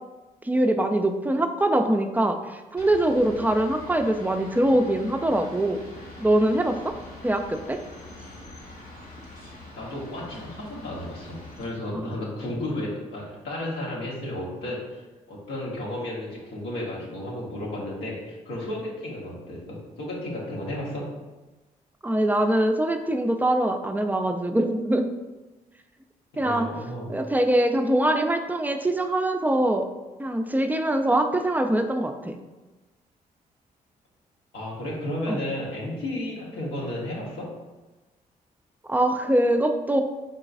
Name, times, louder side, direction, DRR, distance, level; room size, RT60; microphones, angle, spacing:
voice 1, 0.4-5.8 6.2-6.9 7.2-7.8 11.9-12.1 22.0-25.1 26.4-26.7 27.1-29.9 30.2-32.4 35.3-35.4 38.9-40.0, right 1 dB, 10° right, 6 dB, 0.4 m, -23 dB
sound 1, 2.8-11.7, left 1 dB, 60° left, 1.4 m, -43 dB
voice 2, 9.8-21.1 26.3-27.1 34.5-37.5, left 1 dB, 85° left, -5 dB, 1.1 m, -33 dB
4.0 x 3.8 x 2.5 m, 1.1 s
supercardioid pair, 50°, 17 cm